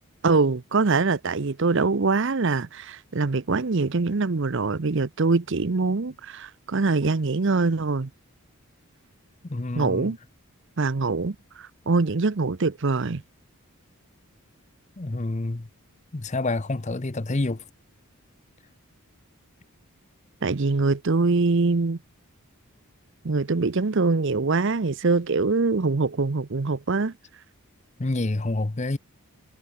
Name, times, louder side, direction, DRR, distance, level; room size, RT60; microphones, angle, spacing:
voice 1, 0.2-8.1 9.7-10.2 10.8-13.2 20.4-22.0 23.2-27.1, right 3 dB, 55° right, 0.7 m, -23 dB
voice 2, 9.4-10.1 15.0-15.7 16.1-17.6 28.0-29.0, left 2 dB, 30° left, 0.7 m, -28 dB
head